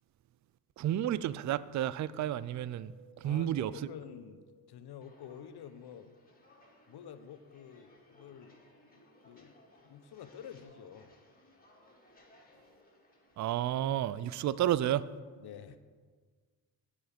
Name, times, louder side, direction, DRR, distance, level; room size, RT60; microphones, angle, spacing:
voice 1, 0.8-3.7 13.4-15.1, right 12 dB, 40° right, 0.4 m, -31 dB
Wind, 2.3-5.5 5.7-5.8, right 4 dB, 20° right, 1.6 m, -62 dB
voice 2, 3.2-6.1 6.9-8.6 8.9-9.5 9.8-11.1 15.4-15.8, left 8 dB, 55° left, 0.9 m, -49 dB
Walk footsteps, 5.0-14.0, left 1 dB, 20° left, 2.4 m, -63 dB
9.4 x 7.2 x 5.1 m
supercardioid pair, 55°, 46 cm